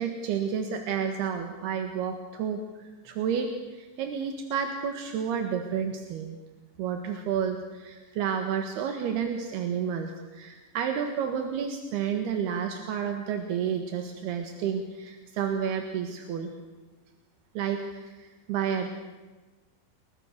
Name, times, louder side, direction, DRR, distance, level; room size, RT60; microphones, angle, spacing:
voice 1, 0.0-6.4 6.8-16.5 17.6-18.9, right 7 dB, 80° right, 5 dB, 3.6 m, -31 dB
29.0 x 23.5 x 6.7 m, 1.2 s
omnidirectional pair, 4.5 m